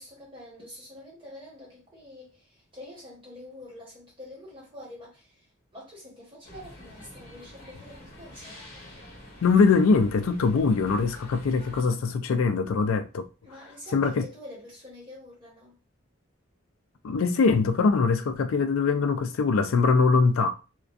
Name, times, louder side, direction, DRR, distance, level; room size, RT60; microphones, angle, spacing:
voice 1, 0.0-8.7 13.4-15.8, left 1 dB, 25° right, 1.2 m, -46 dB
sound 1, 6.4-11.8, left 1 dB, 45° left, 0.9 m, -47 dB
voice 2, 9.4-13.3 13.9-14.2 17.0-20.5, left 4 dB, 85° left, 0.4 m, -22 dB
2.5 x 2.2 x 2.4 m
head